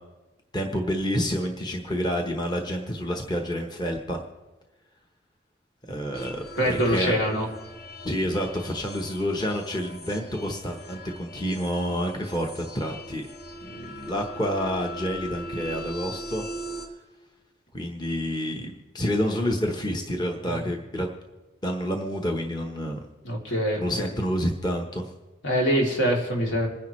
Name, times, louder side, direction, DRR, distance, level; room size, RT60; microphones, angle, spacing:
voice 1, 0.5-4.2 5.9-7.1 8.0-13.3 13.6-16.4 17.7-21.1 21.6-23.0 23.8-25.0, equal, 20° left, 2 dB, 1.0 m, -28 dB
sound 1, 6.1-16.9, equal, 55° left, 1.4 m, -40 dB
voice 2, 6.5-7.5 20.4-20.7 23.2-24.1 25.4-26.7, equal, 75° left, -1 dB, 3.1 m, -24 dB
27.5 x 10.5 x 3.2 m, 1.1 s
head